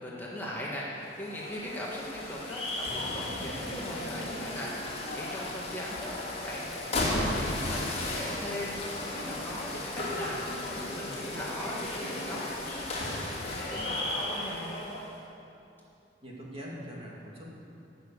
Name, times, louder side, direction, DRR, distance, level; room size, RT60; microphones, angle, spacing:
voice 1, 0.0-4.7 5.1-6.1 6.4-14.7, left 1 dB, 10° left, -5 dB, 1.6 m, -39 dB
sound 1, 1.0-15.1, left 1 dB, 35° left, 2.7 m, -35 dB
voice 2, 16.2-17.5, equal, 30° right, -4 dB, 2.6 m, -42 dB
16.5 x 6.5 x 8.5 m, 2.7 s
head